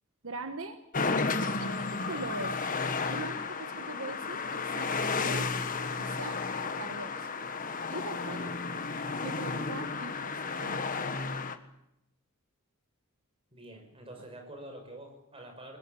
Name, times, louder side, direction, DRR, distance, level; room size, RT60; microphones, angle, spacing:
voice 1, 0.2-0.8 1.6-2.7 3.1-5.6 6.0-6.5 6.8-7.3 7.9-8.6 9.2-10.9, right 2 dB, 65° right, 7 dB, 1.6 m, -41 dB
sound 1, 0.9-11.6, left 4 dB, 40° left, 1.5 m, -33 dB
voice 2, 8.2-8.5 13.5-15.8, right 1 dB, 25° right, 4 dB, 5.9 m, -47 dB
22.0 x 22.0 x 8.8 m, 0.80 s
head